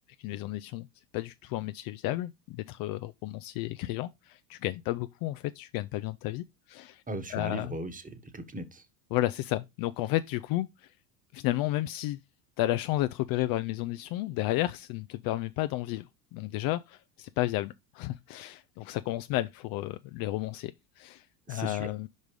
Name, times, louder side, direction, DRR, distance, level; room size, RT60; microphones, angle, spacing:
voice 1, 0.2-0.9 1.1-7.0 7.3-7.8 9.1-10.9 11.3-12.2 12.6-16.1 16.3-22.1, left 16 dB, 50° left, 0.5 m, -32 dB
voice 2, 7.1-8.8 21.5-21.9, right 1 dB, 15° right, 1.4 m, -38 dB
5.3 x 5.1 x 4.7 m
hypercardioid pair, 90°, 49 cm